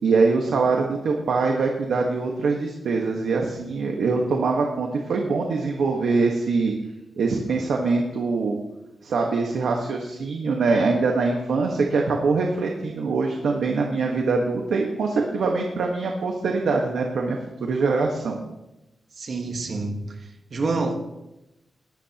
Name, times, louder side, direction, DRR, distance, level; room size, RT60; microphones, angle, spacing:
voice 1, 0.0-6.7 7.2-8.6 9.0-18.4, right 4 dB, 85° right, 1.5 m, -23 dB
voice 2, 19.2-20.1 20.5-21.0, right 3 dB, 50° right, 1.5 m, -27 dB
19.5 x 12.5 x 3.0 m
wide cardioid pair, 120°, 0 cm